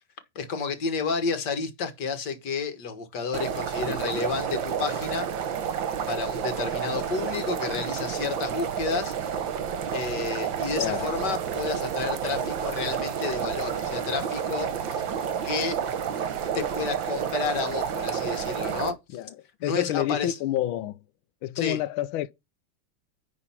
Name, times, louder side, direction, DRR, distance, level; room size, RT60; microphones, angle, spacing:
voice 1, 0.4-5.3 6.1-9.1 9.9-15.0 15.4-15.8 16.5-19.2 19.6-20.4 21.6-21.8, left 5 dB, 55° left, 2.0 m, -31 dB
sound 1, 3.3-18.9, right 8 dB, 65° right, 1.7 m, -30 dB
voice 2, 10.8-11.1 19.1-19.4 19.6-21.0 21.4-22.3, left 13 dB, 75° left, 1.4 m, -28 dB
10.0 x 4.0 x 5.7 m
omnidirectional pair, 2.3 m